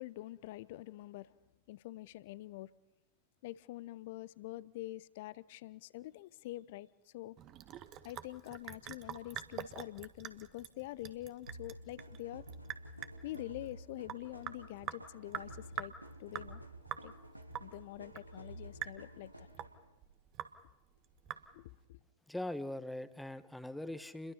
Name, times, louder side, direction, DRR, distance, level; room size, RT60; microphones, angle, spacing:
voice 1, 0.0-1.3 1.7-2.7 3.4-7.4 8.0-12.4 13.2-15.9 16.2-16.6 17.0-17.1 17.6-19.5 21.5-22.0, left 16 dB, 50° left, 0.8 m, -46 dB
Sink (filling or washing) / Drip, 7.4-21.8, right 11 dB, 35° right, 1.5 m, -46 dB
sound 1, 11.5-19.9, right 1 dB, 90° right, 1.7 m, -52 dB
voice 2, 22.3-24.3, left 1 dB, 5° left, 1.3 m, -41 dB
29.5 x 22.5 x 5.7 m
figure-of-eight pair, 90°, 0 cm